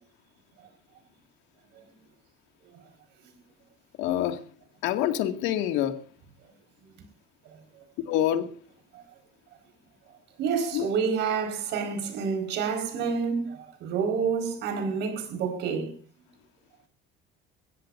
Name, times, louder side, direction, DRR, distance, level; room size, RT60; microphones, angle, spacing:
voice 1, 4.0-4.4 4.8-6.0 8.1-8.5 10.7-10.9, left 11 dB, 80° left, 2.1 m, -26 dB
voice 2, 10.4-15.9, right 6 dB, 65° right, 4.7 m, -28 dB
22.0 x 16.0 x 2.6 m
cardioid pair, 110°, 19 cm